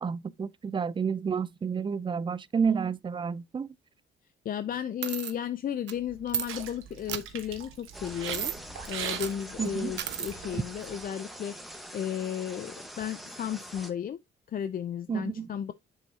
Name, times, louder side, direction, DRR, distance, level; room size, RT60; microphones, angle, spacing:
voice 1, 0.0-3.7 9.6-10.0 10.5-10.6 15.1-15.5, right 6 dB, 25° right, 0.4 m, -30 dB
voice 2, 4.4-8.5 8.9-11.6 11.9-14.2 14.5-15.7, left 9 dB, 45° left, 0.5 m, -34 dB
sound 1, 5.0-5.3 5.9-6.0 6.3-6.5 7.1-7.2 8.3-8.6 9.1-9.4 10.0-10.3, right 10 dB, 65° right, 0.7 m, -33 dB
sound 2, 6.0-11.0, right 8 dB, 85° right, 1.3 m, -41 dB
sound 3, 7.9-13.9, equal, ahead, 1.2 m, -44 dB
7.1 x 5.6 x 2.7 m
cardioid pair, 90°, 20 cm